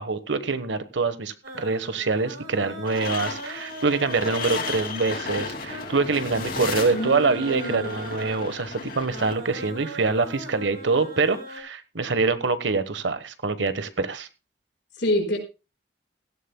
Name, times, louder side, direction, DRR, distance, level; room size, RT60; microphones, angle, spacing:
voice 1, 0.0-14.3, right 4 dB, 85° right, 12 dB, 1.2 m, -25 dB
sound 1, 1.4-11.6, right 1 dB, 65° right, 4.2 m, -40 dB
sound 2, 2.9-9.3, left 4 dB, 50° left, 2.5 m, -34 dB
voice 2, 6.9-7.9 14.9-15.4, left 1 dB, 75° left, 1 dB, 4.7 m, -27 dB
17.0 x 15.0 x 2.2 m, 0.29 s
head